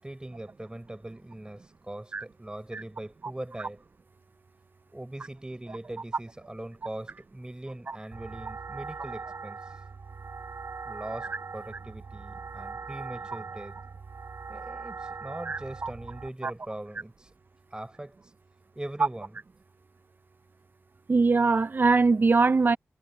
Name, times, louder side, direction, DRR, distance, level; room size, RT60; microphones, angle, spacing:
voice 1, 0.0-3.8 4.9-9.8 10.8-13.8 14.5-17.3 17.7-18.3 18.7-19.4, right 1 dB, 15° right, 5.7 m, -41 dB
sound 1, 8.1-16.3, right 4 dB, 65° right, 6.8 m, -41 dB
voice 2, 15.5-15.9 16.4-16.5 21.1-22.8, right 4 dB, 40° right, 0.4 m, -22 dB
cardioid pair, 60°, 5 cm